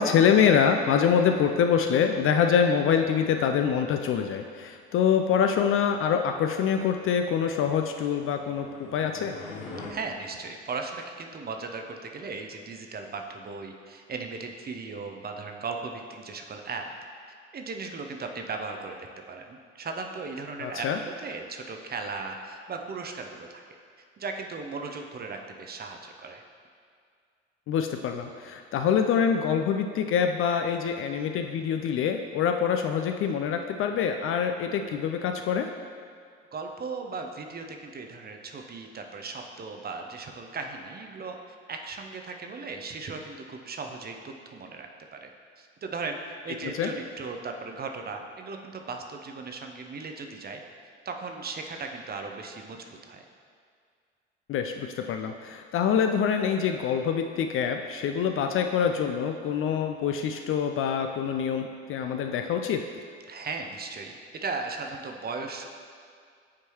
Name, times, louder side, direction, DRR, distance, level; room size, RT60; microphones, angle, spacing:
voice 1, 0.0-9.4 20.6-21.0 27.7-35.7 46.8-46.9 54.5-62.8, left 7 dB, 40° left, 5 dB, 0.4 m, -25 dB
sound 1, 8.1-9.9, left 3 dB, 75° left, 0.9 m, -42 dB
voice 2, 9.9-16.9 17.5-19.0 19.3-23.6 24.2-26.4 36.5-45.3 45.6-46.2 46.4-50.6 51.0-53.3 63.3-65.7, right 4 dB, 25° right, 4 dB, 0.6 m, -37 dB
8.4 x 4.5 x 2.9 m, 2.2 s
figure-of-eight pair, 60°, 35 cm